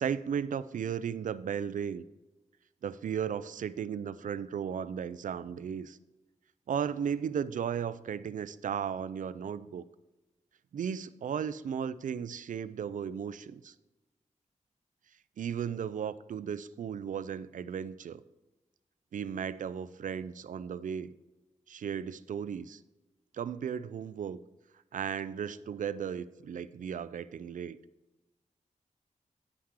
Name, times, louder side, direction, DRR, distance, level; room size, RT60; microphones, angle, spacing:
voice 1, 0.0-2.0 2.8-6.0 6.7-9.8 10.7-13.7 15.4-18.2 19.1-21.1 21.7-22.8 23.3-24.4 24.9-27.8, right 8 dB, 85° right, 15 dB, 0.4 m, -35 dB
10.0 x 5.8 x 4.8 m, 1.1 s
wide cardioid pair, 90°, 13 cm